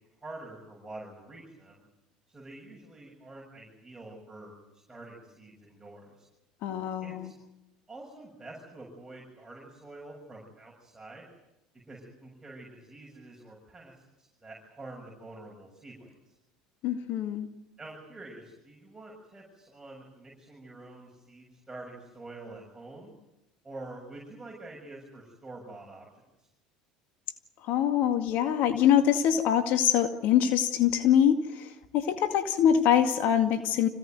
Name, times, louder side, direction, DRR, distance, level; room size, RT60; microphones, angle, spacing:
voice 1, 0.2-1.9 2.3-6.3 7.0-7.3 7.9-11.3 11.9-16.3 17.8-23.1 23.6-26.5, right 2 dB, 15° right, -3 dB, 7.4 m, -47 dB
voice 2, 6.6-7.3 16.8-17.5 27.6-33.9, left 9 dB, 60° left, 7 dB, 2.1 m, -24 dB
26.0 x 17.0 x 9.3 m, 0.93 s
hypercardioid pair, 85°, 3 cm